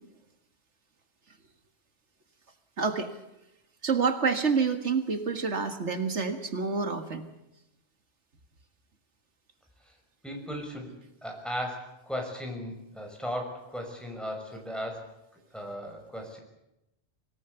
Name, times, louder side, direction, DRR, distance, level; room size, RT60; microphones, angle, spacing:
voice 1, 2.8-3.1 3.8-7.3, right 5 dB, 90° right, 7 dB, 2.1 m, -28 dB
voice 2, 10.2-10.9 11.2-15.1 15.5-16.4, equal, ahead, 1 dB, 6.0 m, -36 dB
25.5 x 18.5 x 8.1 m, 0.90 s
omnidirectional pair, 1.2 m